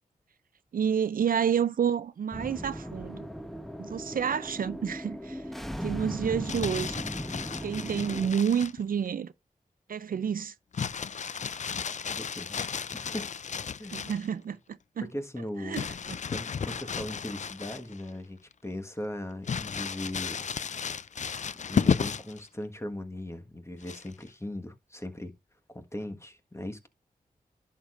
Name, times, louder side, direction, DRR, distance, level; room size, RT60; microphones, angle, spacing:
voice 1, 0.7-3.2 3.8-5.4 5.8-7.0 7.6-9.3 9.9-10.5 13.9-15.1 15.6-16.2, right 7 dB, 65° right, 0.4 m, -29 dB
sound 1, 2.3-8.3, equal, ahead, 1.1 m, -37 dB
Crumpling crinkling, 6.2-8.8 10.7-14.3 15.7-18.1 18.5-18.6 19.4-22.4 23.8-24.3, left 6 dB, 50° left, 0.4 m, -33 dB
voice 2, 12.1-13.3 13.8-14.0 15.0-15.9 16.3-20.5 21.7-25.3 25.7-26.9, left 1 dB, 15° left, 1.5 m, -38 dB
11.0 x 6.7 x 2.5 m
cardioid pair, 40°, 16 cm